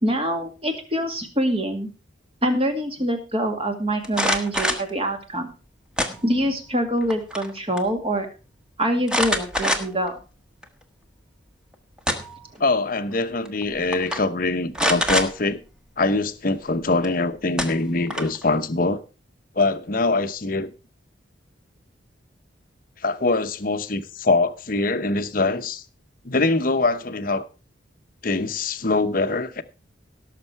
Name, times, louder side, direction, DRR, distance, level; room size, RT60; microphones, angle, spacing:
voice 1, 0.0-1.9 2.4-5.5 6.2-8.3 8.8-10.2, right 1 dB, 30° right, 2.2 m, -25 dB
sound 1, 4.0-4.9 6.0-6.6 7.0-7.5 7.8-7.9 9.1-10.1 10.6-10.7 11.7-12.5 13.5-13.6 13.9-14.2 14.7-15.3 17.0-17.1 17.6-18.4, equal, 5° right, 1.3 m, -24 dB
voice 2, 12.6-15.6 16.0-19.0 19.6-20.7 23.0-25.8 26.2-27.4 28.2-29.6, left 3 dB, 45° left, 0.9 m, -23 dB
17.0 x 6.8 x 4.6 m
head